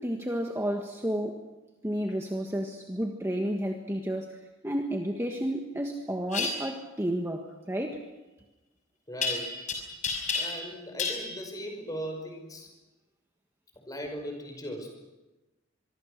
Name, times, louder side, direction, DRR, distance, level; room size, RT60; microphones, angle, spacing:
voice 1, 0.0-1.4 1.8-8.1, equal, 15° right, 2 dB, 1.5 m, -31 dB
sound 1, 6.3-6.5 9.2-9.7 10.0-10.7 11.0-11.2, left 4 dB, 35° left, 5.8 m, -30 dB
voice 2, 9.1-9.7 10.4-12.7 13.8-15.1, equal, 20° left, 4 dB, 5.3 m, -38 dB
24.5 x 24.0 x 6.6 m, 1.1 s
head